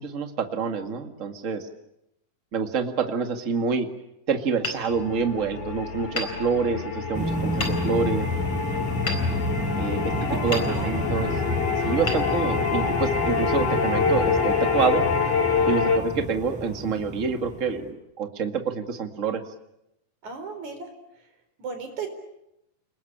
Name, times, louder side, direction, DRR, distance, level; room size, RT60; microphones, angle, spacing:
voice 1, 0.0-1.7 2.5-3.9 4.3-8.3 9.8-10.1 10.4-11.3 11.8-15.0 15.7-19.4, right 5 dB, 30° right, 6 dB, 1.8 m, -27 dB
Hammer, 4.6-5.6 6.1-7.0 7.6-8.2 9.1-10.0 10.5-11.2 12.0-13.0, left 2 dB, 35° left, 5.0 m, -35 dB
sound 1, 4.9-16.0, left 5 dB, 50° left, 3.4 m, -26 dB
sound 2, 7.1-17.9, equal, ahead, 6.0 m, -30 dB
voice 2, 10.1-11.1 20.2-20.9 21.6-22.1, right 4 dB, 60° right, 6 dB, 5.6 m, -35 dB
29.5 x 20.5 x 8.8 m, 0.84 s
omnidirectional pair, 3.8 m